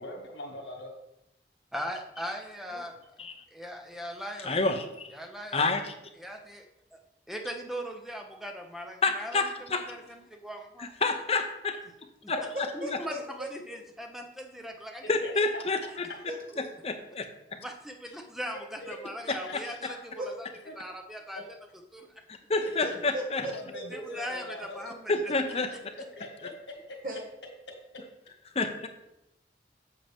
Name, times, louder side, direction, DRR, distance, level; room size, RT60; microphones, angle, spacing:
voice 1, 0.0-0.9 15.2-15.3 18.5-19.0 19.2-20.0 20.6-20.7 22.7-22.8 23.4-24.8 25.1-25.2 26.1-27.0, left 1 dB, 90° left, 1 dB, 1.7 m, -42 dB
voice 2, 1.7-3.0 3.5-4.6 5.1-5.6 6.2-7.0 7.3-9.4 9.7-10.9 12.2-12.3 12.7-15.0 15.4-15.5 17.6-20.5 20.8-21.4 21.9-22.1 23.9-25.3, equal, ahead, 3 dB, 0.7 m, -39 dB
voice 3, 4.4-5.1 5.5-5.9 9.0-9.9 10.8-11.8 12.3-12.4 15.1-16.1 16.6-17.2 22.5-23.5 25.1-25.7 28.5-28.9, left 3 dB, 35° left, 6 dB, 0.7 m, -28 dB
voice 4, 12.3-13.5 16.3-16.6 20.2-20.3 23.1-24.1 27.0-27.2, right 1 dB, 50° right, -1 dB, 1.5 m, -37 dB
7.7 x 7.1 x 3.5 m, 0.86 s
head